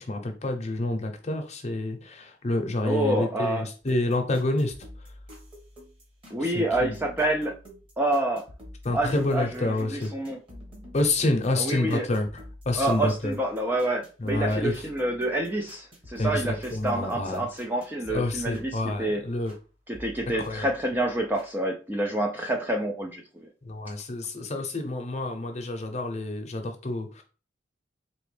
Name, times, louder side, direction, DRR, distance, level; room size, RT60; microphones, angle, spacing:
voice 1, 0.0-4.7 6.4-6.9 8.8-10.1 10.9-13.4 14.2-14.8 16.2-17.4 18.1-19.5 20.3-20.7 23.6-27.2, left 2 dB, 35° left, 5 dB, 0.7 m, -28 dB
voice 2, 2.8-3.7 6.3-7.5 8.0-8.4 8.9-10.4 11.6-12.1 12.8-19.2 19.9-23.2, right 1 dB, 10° right, 1 dB, 0.3 m, -28 dB
sound 1, 3.8-19.6 19.9-21.5, equal, 30° right, 1.3 m, -48 dB
4.1 x 3.0 x 3.3 m, 0.35 s
head